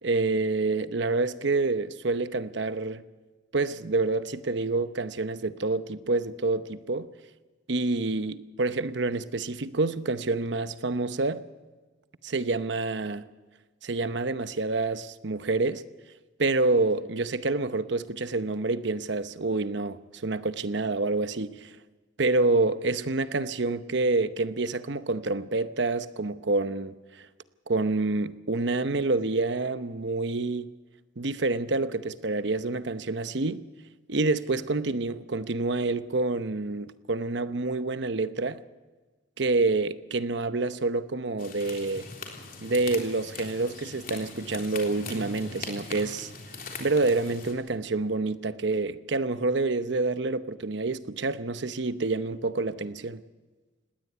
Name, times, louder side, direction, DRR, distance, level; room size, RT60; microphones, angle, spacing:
voice 1, 0.0-3.0 3.5-7.1 7.7-11.5 12.2-13.3 13.8-15.8 16.4-21.8 22.2-26.9 27.7-30.7 31.2-33.6 34.1-38.6 39.4-42.1 42.6-46.3 46.8-53.2, right 3 dB, 60° right, 0.9 m, -27 dB
sound 1, 41.4-47.5, left 3 dB, 45° left, 3.5 m, -40 dB
19.5 x 17.5 x 8.3 m
head